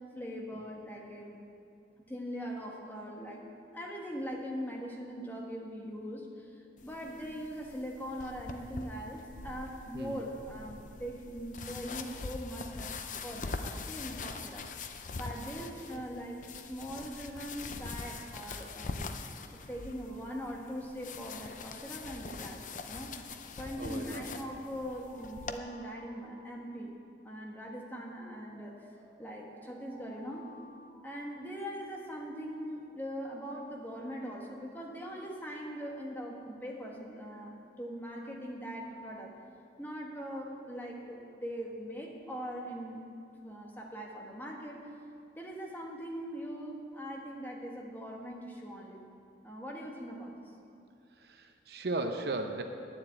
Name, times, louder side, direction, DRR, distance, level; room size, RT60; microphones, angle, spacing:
voice 1, 0.1-1.4 2.1-3.4 3.7-12.9 13.2-14.7 15.2-19.1 19.5-26.9 27.2-28.9 29.2-30.5 31.0-39.3 39.8-43.0 43.4-44.9 45.4-49.0 49.4-50.3, equal, 10° left, -1 dB, 1.2 m, -41 dB
sound 1, 6.8-25.6, left 4 dB, 45° left, 0.5 m, -43 dB
voice 2, 9.9-10.2 15.6-16.0 23.8-24.2 51.2-52.6, right 2 dB, 60° right, 5 dB, 0.7 m, -37 dB
sound 2, 16.0-17.8 18.1-18.2 18.6-18.7 19.4-19.8 20.4-21.0 21.5-21.9 23.6-27.3 28.4-31.1, left 1 dB, 65° left, 2.6 m, -57 dB
9.6 x 7.3 x 8.4 m, 2.5 s
head